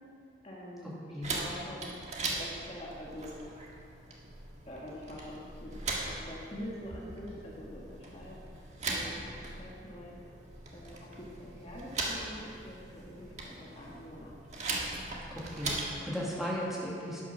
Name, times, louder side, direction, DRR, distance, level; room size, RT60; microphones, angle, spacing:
voice 1, 0.4-1.9 2.4-3.4 4.7-5.8 6.0-10.2 10.7-14.3, equal, 35° left, -4 dB, 1.6 m, -45 dB
sound 1, 1.2-16.0, right 3 dB, 40° right, 1.6 m, -40 dB
voice 2, 15.3-17.2, equal, ahead, -6 dB, 2.2 m, -36 dB
11.5 x 9.1 x 6.0 m, 2.4 s
head